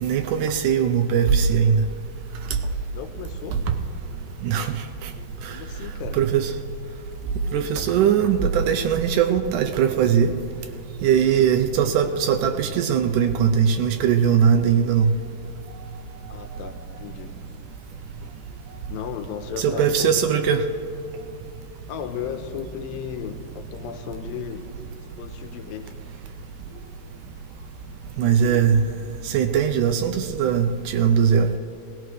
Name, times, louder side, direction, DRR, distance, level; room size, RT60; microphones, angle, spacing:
voice 1, 0.0-1.8 4.4-4.8 5.0-5.1 5.4-5.5 6.1-6.5 7.5-10.3 11.0-15.1 19.6-20.7 28.2-28.8 29.3-31.5, right 7 dB, 80° right, 6 dB, 1.9 m, -20 dB
voice 2, 2.9-3.6 5.5-6.2 16.3-17.3 18.9-20.1 21.9-24.6 25.2-25.9 28.2-28.7, left 8 dB, 80° left, 7 dB, 2.6 m, -35 dB
19.0 x 18.5 x 3.2 m, 2.5 s
omnidirectional pair, 4.1 m